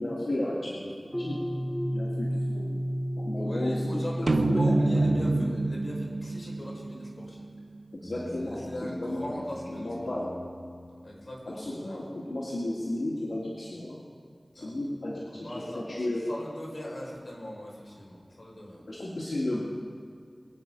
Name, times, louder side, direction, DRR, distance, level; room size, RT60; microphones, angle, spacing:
voice 1, 0.0-1.4 1.9-2.8 3.2-5.5 7.9-9.4 9.7-10.3 11.5-14.0 14.5-16.2 18.9-19.7, left 1 dB, 85° left, -6 dB, 2.4 m, -34 dB
sound 1, 1.1-6.3, equal, 5° left, 1.2 m, -32 dB
voice 2, 3.4-7.5 8.1-10.2 11.0-12.0 14.5-14.8 15.3-18.8, left 1 dB, 60° left, -3 dB, 5.1 m, -40 dB
sound 2, 4.3-7.8, right 2 dB, 85° right, 0.8 m, -27 dB
sound 3, 8.0-11.7, left 1 dB, 25° left, 1.1 m, -42 dB
23.5 x 9.0 x 5.5 m, 2.2 s
wide cardioid pair, 60°, 0 cm